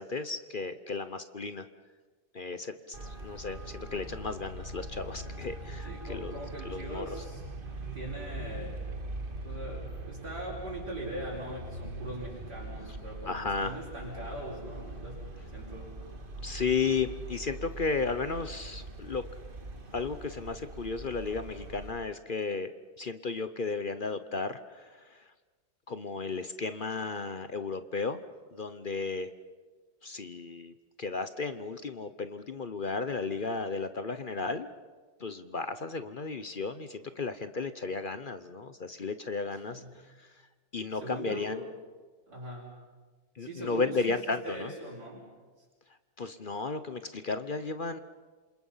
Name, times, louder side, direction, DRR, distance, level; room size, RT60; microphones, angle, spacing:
voice 1, 0.0-1.7 2.3-6.4 6.6-7.0 13.2-13.8 16.4-19.2 19.9-22.7 23.0-25.2 25.9-28.2 28.5-29.3 30.0-34.7 35.2-39.8 40.2-40.3 40.7-41.6 43.4-44.7 46.2-48.0, left 4 dB, 45° left, 11 dB, 0.6 m, -34 dB
Traffic noise roadway noise, 2.9-21.9, right 2 dB, 30° right, 1.9 m, -42 dB
voice 2, 5.8-7.4 7.9-9.0 9.4-15.9 39.7-39.9 40.9-41.7 42.3-42.7 43.4-45.3, right 1 dB, 55° right, -5 dB, 5.1 m, -41 dB
27.5 x 27.0 x 5.7 m, 1.4 s
omnidirectional pair, 2.1 m